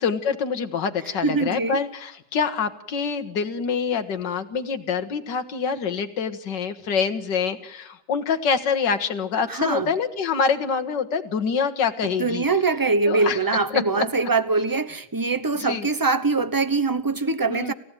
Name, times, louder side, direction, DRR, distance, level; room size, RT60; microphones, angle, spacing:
voice 1, 0.0-12.5 13.1-13.4 13.7-14.1 15.6-15.9 17.5-17.7, left 6 dB, 80° left, 2.0 m, -25 dB
voice 2, 1.2-1.8 9.5-9.9 12.0-17.7, right 3 dB, 15° right, 0.8 m, -23 dB
28.5 x 15.0 x 9.2 m
omnidirectional pair, 1.9 m